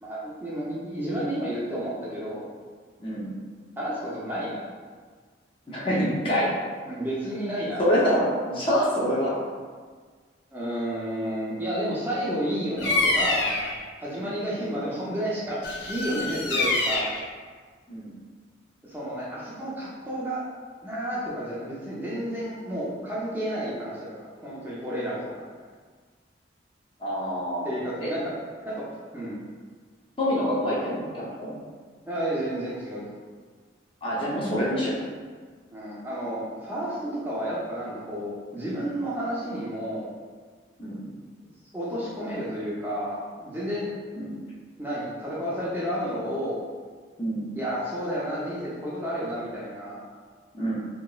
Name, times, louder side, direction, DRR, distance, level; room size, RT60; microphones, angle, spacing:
voice 1, 0.0-2.5 3.8-4.6 6.9-7.8 10.5-13.5 14.0-17.1 18.8-20.4 20.8-25.4 27.6-28.3 28.6-28.8 29.1-29.4 32.0-33.0 35.7-40.1 41.7-43.9 44.8-46.6 47.5-50.0, equal, 10° right, -8 dB, 0.5 m, -31 dB
voice 2, 5.7-6.5 7.8-9.4 14.2-14.4 17.9-18.1 27.0-27.7 28.0-28.1 30.2-31.6 34.0-35.0 40.8-41.0 44.1-44.3 47.2-47.5 50.5-50.7, equal, 30° left, -6 dB, 0.6 m, -26 dB
Bird vocalization bird call bird song, 12.8-13.8 15.6-17.2, left 2 dB, 70° left, 0.4 m, -26 dB
3.0 x 2.9 x 2.3 m, 1.5 s
head